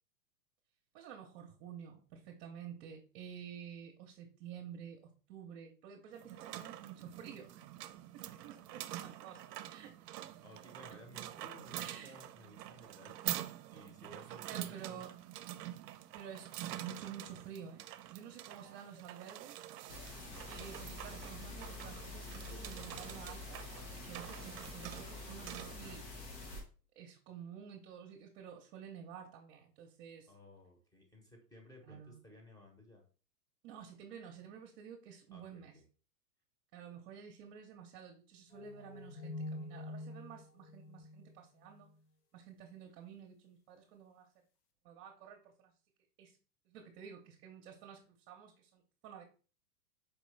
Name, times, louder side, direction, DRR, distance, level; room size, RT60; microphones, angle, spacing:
voice 1, 0.9-7.6 8.1-10.0 11.8-12.2 14.4-15.1 16.1-16.5 16.8-17.8 18.1-19.6 20.5-23.6 24.0-26.0 27.0-30.3 31.9-32.2 33.6-35.7 36.7-41.9 42.3-44.3 44.8-45.7 46.2-46.3 46.7-49.2, right 8 dB, 40° right, 1 dB, 0.7 m, -51 dB
sound 1, 6.1-26.0, right 13 dB, 75° right, 0.5 m, -46 dB
voice 2, 10.4-15.0 30.3-33.0 35.3-35.8, left 1 dB, 10° left, 2 dB, 1.0 m, -57 dB
sound 2, 19.9-26.6, left 3 dB, 90° left, 1.5 m, -47 dB
sound 3, 38.5-41.9, left 2 dB, 70° left, 0.9 m, -46 dB
4.5 x 3.0 x 3.2 m, 0.38 s
hypercardioid pair, 130°, 49 cm